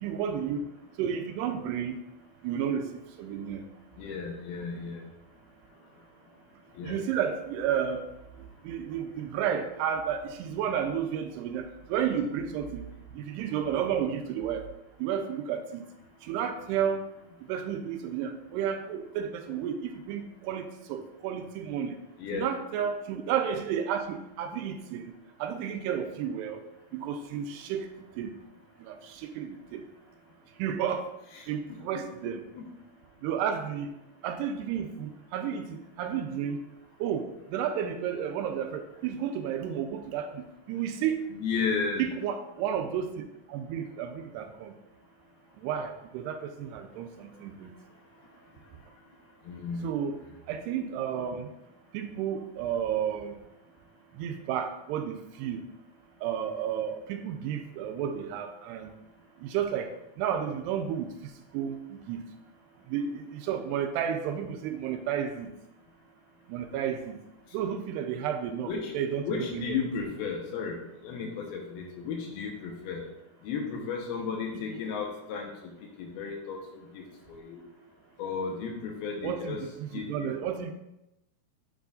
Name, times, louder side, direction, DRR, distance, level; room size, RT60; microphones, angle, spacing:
voice 1, 0.0-0.6 1.0-2.0 2.4-2.9 3.2-3.6 6.8-8.0 8.7-12.8 13.2-14.7 15.0-15.8 16.3-17.0 17.5-20.6 20.9-22.0 22.3-25.1 25.4-26.6 26.9-27.9 28.2-28.3 28.9-29.0 29.2-29.8 30.6-31.1 31.5-32.4 33.2-33.9 34.2-36.6 37.0-37.3 37.5-41.3 42.0-43.2 43.5-44.7 45.6-47.7 49.8-50.2 50.5-51.5 51.9-53.3 54.2-55.6 56.2-58.9 59.4-59.9 60.2-61.1 61.5-61.8 62.1-62.2 62.9-65.5 66.5-67.2 67.5-69.8 74.5-74.6 79.2-80.7, right 8 dB, 85° right, 6 dB, 2.6 m, -32 dB
voice 2, 4.0-5.0 6.7-6.9 22.2-22.5 31.4-32.0 32.5-32.6 41.3-42.1 49.5-49.9 68.7-68.9 69.2-70.8 71.0-73.1 73.4-75.5 76.0-76.6 76.9-77.6 78.2-79.6 79.9-80.3, left 5 dB, 70° left, 1 dB, 2.8 m, -34 dB
9.2 x 8.8 x 2.6 m, 0.89 s
omnidirectional pair, 4.9 m